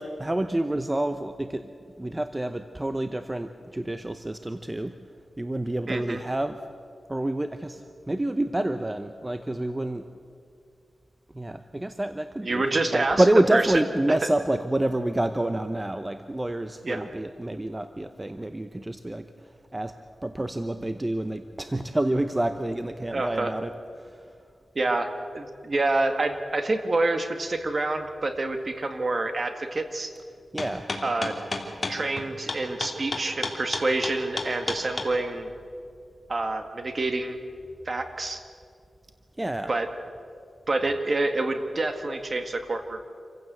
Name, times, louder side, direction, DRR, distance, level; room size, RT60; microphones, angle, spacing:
voice 1, 0.0-1.7 2.0-4.9 5.4-6.6 7.1-10.1 11.3-12.6 12.9-19.3 19.7-19.9 20.2-23.7 24.0-24.2 30.5-30.9 39.4-39.7, right 1 dB, 20° right, 9 dB, 0.8 m, -28 dB
voice 2, 5.9-6.2 12.4-13.2 13.5-13.7 16.8-17.1 23.1-23.5 24.8-25.1 25.3-30.1 31.0-31.3 31.9-35.5 36.3-37.4 37.9-38.4 39.7-39.9 40.7-43.0, right 2 dB, 45° right, 7 dB, 1.9 m, -27 dB
sound 1, 30.6-35.1, left 3 dB, 35° left, 2.8 m, -30 dB
26.5 x 15.5 x 8.0 m, 2.4 s
wide cardioid pair, 85°, 0 cm